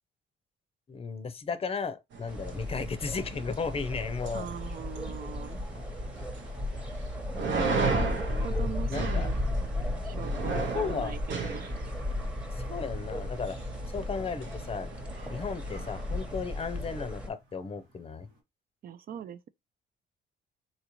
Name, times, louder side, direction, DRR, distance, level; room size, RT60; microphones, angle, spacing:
voice 1, 0.9-4.5 8.3-9.3 10.5-11.2 12.5-13.6 13.9-14.9 15.3-18.3, left 5 dB, 30° left, 0.6 m, -35 dB
sound 1, 2.1-17.1, right 4 dB, 70° right, 0.8 m, -37 dB
sound 2, 2.3-17.3, left 1 dB, 5° right, 1.0 m, -35 dB
voice 2, 4.3-5.6 7.9-11.7 18.8-19.5, right 9 dB, 50° right, 0.4 m, -42 dB
sound 3, 8.8-18.4, right 2 dB, 90° right, 1.4 m, -57 dB
4.0 x 2.5 x 3.0 m
cardioid pair, 90°, 20 cm